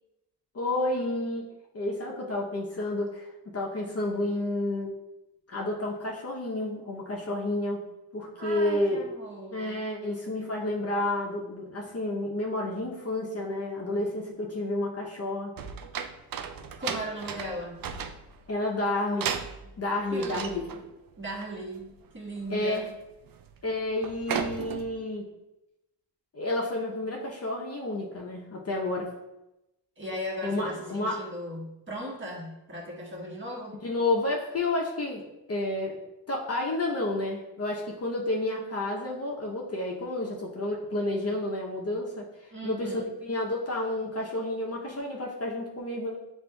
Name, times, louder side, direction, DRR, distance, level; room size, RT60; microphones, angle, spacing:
voice 1, 0.5-1.5 1.7-4.9 5.5-7.8 8.1-9.0 9.5-15.6 18.5-19.4 19.8-20.6 22.5-22.8 23.6-25.3 26.3-29.1 30.4-31.3 33.8-35.2 35.5-36.0 36.3-42.3 42.6-46.2, left 2 dB, 35° left, -2 dB, 0.7 m, -30 dB
voice 2, 8.4-9.8 16.8-17.8 19.6-19.7 20.1-20.8 21.2-22.9 30.0-33.8 42.5-43.1, equal, 25° right, -3 dB, 1.3 m, -37 dB
sound 1, 15.6-18.5 19.2-19.8 20.2-20.9 21.2-21.5 21.8-22.0 22.4-22.8 23.1-23.6 23.9-25.0, right 7 dB, 50° right, 0.5 m, -35 dB
7.5 x 2.6 x 2.3 m, 0.94 s
cardioid pair, 70°, 44 cm